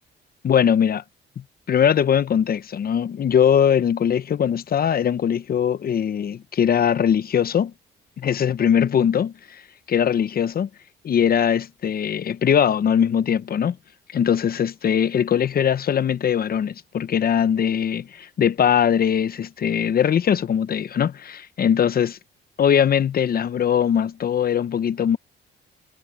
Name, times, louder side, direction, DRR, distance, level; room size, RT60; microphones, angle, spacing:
voice 1, 0.4-1.0 1.7-7.7 8.2-9.6 9.9-10.7 11.0-13.8 14.1-22.2 22.6-25.2, left 8 dB, 50° left, 0.8 m, -21 dB
cardioid pair, 90°, 20 cm